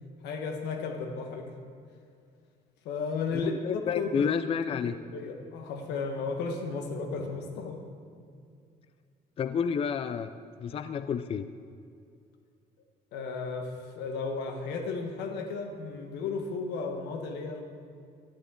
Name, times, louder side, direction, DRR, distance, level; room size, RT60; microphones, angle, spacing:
voice 1, 0.2-1.5 2.8-4.3 4.7-4.8 5.1-7.9 13.1-17.6, left 4 dB, 85° left, 4 dB, 1.4 m, -34 dB
voice 2, 3.3-5.0 9.4-10.3 10.6-11.5, left 7 dB, 35° left, 11 dB, 0.4 m, -30 dB
12.0 x 11.5 x 3.8 m, 2.3 s
cardioid pair, 110°, 17 cm